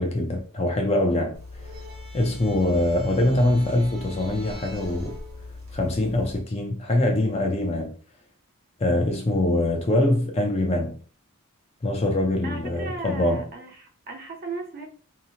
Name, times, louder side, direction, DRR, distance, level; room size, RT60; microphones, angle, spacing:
voice 1, 0.0-1.4 2.1-5.2 5.7-7.9 8.8-11.0 11.8-13.5, left 1 dB, 30° left, 0.4 m, -23 dB
sound 1, 1.3-6.4, left 2 dB, 65° right, 0.9 m, -40 dB
voice 2, 12.4-14.9, right 3 dB, 45° right, 0.6 m, -36 dB
2.7 x 2.1 x 2.7 m
head